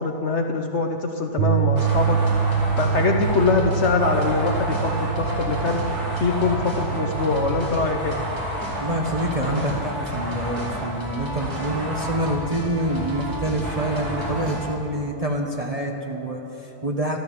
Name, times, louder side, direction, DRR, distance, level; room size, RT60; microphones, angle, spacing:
voice 1, 0.0-2.2 2.8-5.8 6.2-8.2, left 4 dB, 50° left, 4 dB, 1.0 m, -23 dB
Bass guitar, 1.4-7.6, right 7 dB, 90° right, 1.5 m, -25 dB
sound 1, 1.8-14.6, equal, 65° right, 3.4 m, -30 dB
sound 2, 8.3-14.8, equal, 70° left, 2.3 m, -41 dB
voice 2, 8.8-17.2, right 1 dB, 25° right, 0 dB, 0.9 m, -27 dB
13.0 x 13.0 x 7.3 m, 2.9 s
omnidirectional pair, 1.7 m